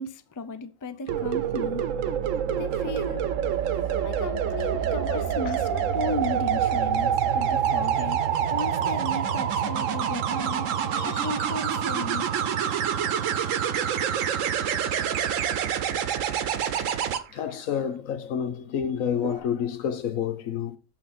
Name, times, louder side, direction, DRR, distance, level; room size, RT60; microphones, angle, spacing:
voice 1, 0.0-1.8 2.5-3.3 4.0-8.2 8.5-10.7 11.0-12.3, left 3 dB, 30° left, 0.3 m, -35 dB
sound 1, 1.1-17.2 19.1-19.4, right 8 dB, 75° right, 1.1 m, -26 dB
voice 2, 10.9-11.3 17.3-20.8, left 8 dB, 85° left, 1.2 m, -29 dB
7.0 x 5.8 x 4.3 m
omnidirectional pair, 1.4 m